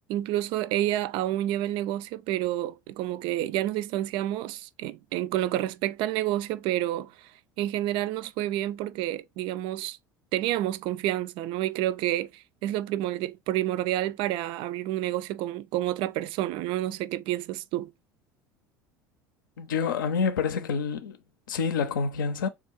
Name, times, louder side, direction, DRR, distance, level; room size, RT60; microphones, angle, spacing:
voice 1, 0.1-7.3 7.6-10.0 10.3-17.9, right 14 dB, 50° right, 0.4 m, -29 dB
voice 2, 19.6-21.2 21.5-22.5, left 5 dB, 70° left, 0.6 m, -27 dB
3.6 x 2.4 x 4.4 m
figure-of-eight pair, 70°, 11 cm